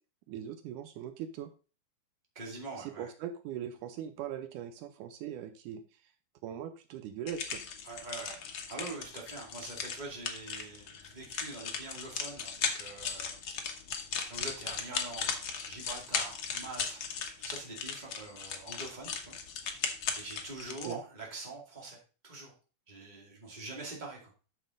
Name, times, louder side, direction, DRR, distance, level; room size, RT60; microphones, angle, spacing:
voice 1, 0.3-1.5 2.8-5.8 6.4-7.6 20.9-21.0, right 9 dB, 80° right, 9 dB, 2.2 m, -40 dB
voice 2, 2.3-3.1 7.8-13.4 14.3-17.0 17.4-19.3 19.7-22.0 22.2-22.5 22.9-24.3, right 3 dB, 15° right, -1 dB, 2.2 m, -44 dB
sound 1, 7.3-20.9, left 6 dB, 60° left, 1.3 m, -37 dB
9.2 x 6.5 x 3.8 m, 0.34 s
omnidirectional pair, 3.7 m